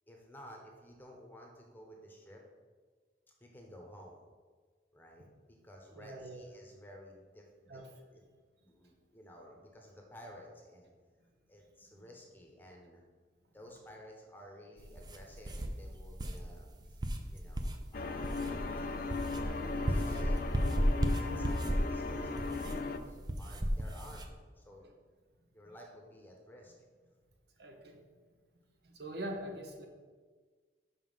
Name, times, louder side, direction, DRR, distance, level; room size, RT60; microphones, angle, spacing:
voice 1, 0.1-2.4 3.4-4.2 4.9-7.8 8.1-8.2 8.6-10.9 11.5-13.0 13.5-19.1 19.4-20.8 21.2-24.3 24.6-24.9 25.5-26.7, equal, 10° left, 0 dB, 1.0 m, -54 dB
voice 2, 5.9-6.5 7.7-7.9 27.6-28.0 28.8-29.9, right 1 dB, 65° right, 2 dB, 1.0 m, -43 dB
sound 1, 14.8-24.3, equal, 25° right, 0.5 m, -35 dB
sound 2, 17.9-23.0, left 3 dB, 50° left, 0.4 m, -37 dB
5.7 x 5.5 x 5.6 m, 1.5 s
head